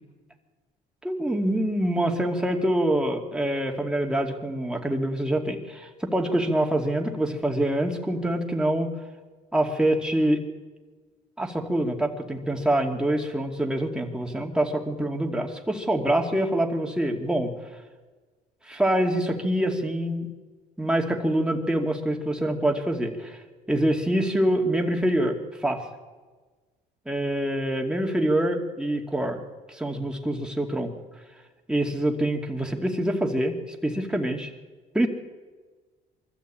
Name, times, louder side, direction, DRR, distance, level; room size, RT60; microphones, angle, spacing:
voice 1, 1.0-8.9 9.5-10.4 11.4-17.5 18.7-20.3 20.8-23.4 23.7-25.8 27.1-29.4 29.7-30.9 31.7-34.5 34.9-35.1, right 1 dB, 5° right, 2 dB, 2.5 m, -25 dB
23.5 x 13.5 x 8.7 m, 1.3 s
cardioid pair, 110°, 17 cm